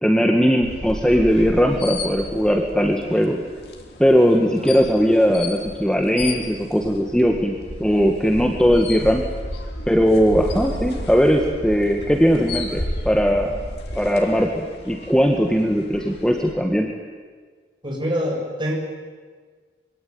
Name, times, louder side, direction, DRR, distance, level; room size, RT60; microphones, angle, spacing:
voice 1, 0.0-3.4 4.0-9.3 9.9-13.6 13.9-16.9, equal, 5° left, 2 dB, 1.7 m, -19 dB
sound 1, 0.6-16.5, left 1 dB, 65° left, 3.8 m, -33 dB
voice 2, 17.8-18.7, equal, 25° right, 0 dB, 6.9 m, -25 dB
25.5 x 24.0 x 9.6 m, 1.5 s
head